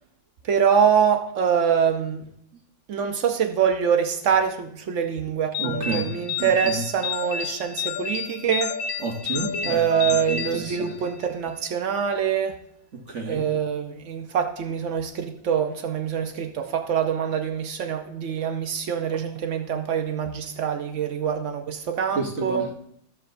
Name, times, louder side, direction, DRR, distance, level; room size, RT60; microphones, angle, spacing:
voice 1, 0.4-2.2 2.9-8.7 9.6-12.5 13.3-22.7, right 7 dB, 80° right, 5 dB, 0.6 m, -24 dB
sound 1, 5.5-11.3, left 7 dB, 80° left, 1.5 m, -31 dB
voice 2, 5.6-6.1 6.4-6.8 9.0-9.9 10.3-10.9 13.1-13.4 22.2-22.7, right 4 dB, 45° right, 1 dB, 1.1 m, -30 dB
14.0 x 7.5 x 2.6 m, 0.68 s
omnidirectional pair, 2.1 m